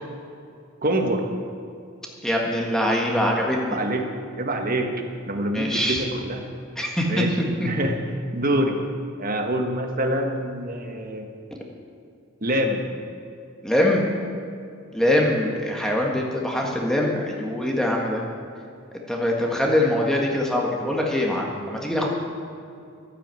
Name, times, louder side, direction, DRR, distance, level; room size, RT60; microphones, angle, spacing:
voice 1, 0.8-1.2 3.6-4.1 4.4-4.9 5.3-6.4 7.1-7.3 7.6-8.0 8.3-8.8 9.2-11.3 12.4-12.8, right 1 dB, 45° right, 3 dB, 1.5 m, -25 dB
voice 2, 2.2-3.8 5.5-6.0 6.8-7.1 7.6-7.7 13.6-14.0 14.9-18.2 19.1-22.1, left 1 dB, 5° left, -1 dB, 1.6 m, -23 dB
12.5 x 9.9 x 7.7 m, 2.4 s
head